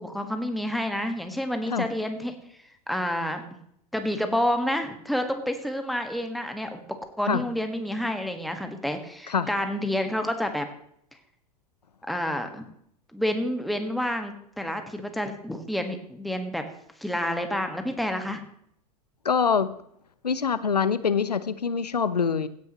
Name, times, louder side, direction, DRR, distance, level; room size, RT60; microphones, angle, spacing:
voice 1, 0.0-2.3 2.9-3.4 3.9-6.8 7.2-10.7 12.1-12.6 13.1-16.6 17.0-18.4, left 1 dB, ahead, 6 dB, 1.5 m, -29 dB
voice 2, 19.2-19.7 20.2-22.5, left 6 dB, 90° left, 15 dB, 0.7 m, -24 dB
16.5 x 9.8 x 3.0 m, 0.69 s
figure-of-eight pair, 90°, 20 cm